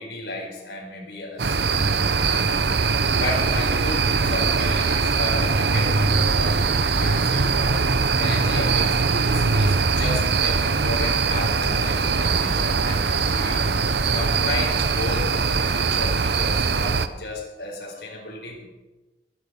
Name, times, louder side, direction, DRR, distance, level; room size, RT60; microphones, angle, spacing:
voice 1, 0.0-2.6 3.1-7.8 8.2-13.6 14.1-18.7, left 2 dB, 65° left, -3 dB, 4.4 m, -33 dB
sound 1, 1.4-17.1, right 4 dB, 65° right, 0.8 m, -21 dB
23.0 x 9.4 x 5.4 m, 1.1 s
head